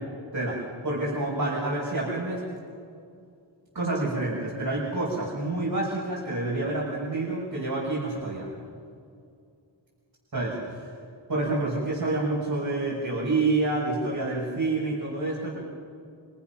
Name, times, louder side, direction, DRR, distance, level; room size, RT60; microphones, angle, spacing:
voice 1, 0.3-2.4 3.7-8.5 10.3-10.9 11.3-15.6, right 2 dB, 50° right, -6 dB, 6.4 m, -28 dB
28.5 x 26.5 x 6.0 m, 2.4 s
wide cardioid pair, 80°, 47 cm